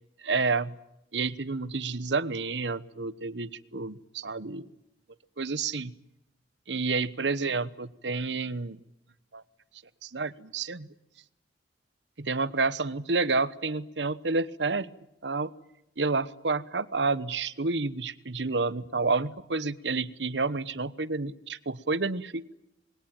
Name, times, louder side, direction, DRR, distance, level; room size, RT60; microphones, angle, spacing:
voice 1, 0.2-0.8 1.1-4.7 5.4-5.9 6.7-8.8 9.3-9.4 10.0-10.9 12.3-14.9 15.2-15.5 16.0-22.5, right 3 dB, 85° right, 16 dB, 1.1 m, -29 dB
26.5 x 21.5 x 9.1 m, 0.85 s
head